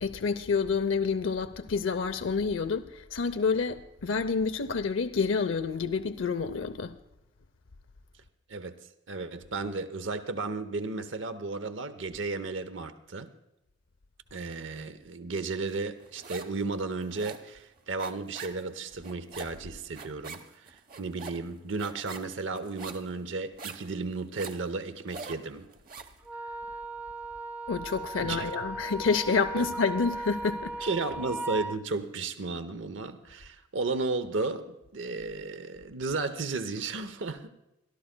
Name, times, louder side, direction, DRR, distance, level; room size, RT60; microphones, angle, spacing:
voice 1, 0.0-7.0 27.7-30.9, left 5 dB, 90° left, 0.6 m, -28 dB
voice 2, 9.1-13.3 14.3-25.7 28.2-28.4 29.5-29.7 30.8-37.5, right 3 dB, 75° right, 0.8 m, -34 dB
sound 1, 15.7-16.6 16.9-26.2, right 4 dB, 45° right, 0.9 m, -45 dB
Wind instrument woodwind instrument, 26.2-31.8, right 2 dB, 10° right, 0.4 m, -37 dB
26.0 x 13.0 x 2.2 m
head